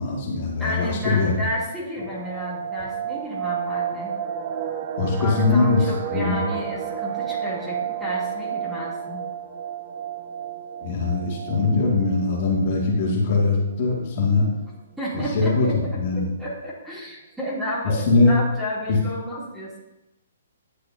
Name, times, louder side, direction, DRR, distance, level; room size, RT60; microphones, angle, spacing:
voice 1, 0.0-1.4 5.0-5.8 6.1-6.4 10.8-14.5 15.1-16.3 18.1-18.3, left 3 dB, 50° left, -3 dB, 2.3 m, -21 dB
voice 2, 0.6-4.1 5.2-9.2 15.0-19.8, equal, 5° right, -8 dB, 2.9 m, -32 dB
sound 1, 2.0-12.8 13.1-13.2 13.5-13.7 14.2-14.6 15.1-15.2 15.4-15.9 16.2-16.3, right 8 dB, 40° right, 0.7 m, -31 dB
10.5 x 6.6 x 2.8 m, 0.93 s
hypercardioid pair, 135°, 0 cm